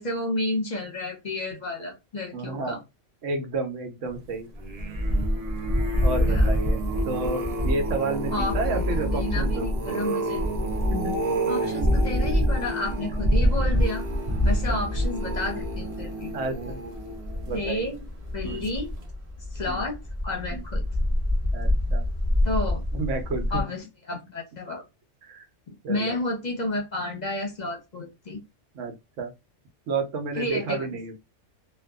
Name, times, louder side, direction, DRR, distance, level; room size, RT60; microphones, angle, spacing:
voice 1, 0.0-2.8 6.3-6.5 8.3-8.5 9.0-10.4 11.5-14.0 14.4-16.3 17.5-18.0 18.3-18.9 19.5-20.0 20.2-20.8 22.4-22.8 23.5-24.8 25.9-28.4 30.3-30.9, left 2 dB, 45° left, 0.7 m, -31 dB
voice 2, 2.3-2.8 3.2-4.5 6.0-6.8 7.0-9.8 10.9-11.2 14.7-14.8 16.3-16.8 17.5-17.9 18.4-18.7 19.7-19.8 20.5-20.6 21.5-22.0 22.9-23.6 25.2-25.5 25.8-26.2 28.7-29.3 29.9-31.2, right 3 dB, 85° right, 1.1 m, -31 dB
sound 1, 4.6-17.9 18.4-18.8 19.0-19.1, equal, 55° right, 0.4 m, -26 dB
sound 2, 13.5-23.6, left 1 dB, 15° right, 0.8 m, -30 dB
2.6 x 2.3 x 2.2 m
omnidirectional pair, 1.2 m